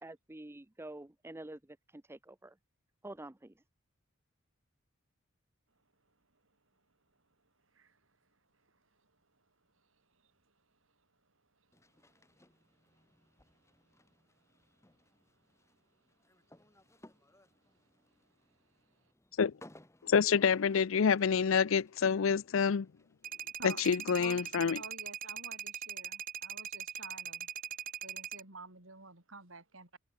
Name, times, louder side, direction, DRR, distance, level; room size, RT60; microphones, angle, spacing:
voice 1, 0.0-2.6 3.0-3.5, right 1 dB, 10° right, 0.6 m, -48 dB
sound 1, 11.7-24.6, left 1 dB, 15° left, 3.2 m, -63 dB
voice 2, 20.0-22.9 23.6-24.8, left 6 dB, 70° left, 0.5 m, -27 dB
sound 2, 23.2-28.4, right 9 dB, 40° right, 1.8 m, -41 dB
voice 3, 24.8-27.5 28.0-30.0, right 3 dB, 70° right, 5.6 m, -49 dB
head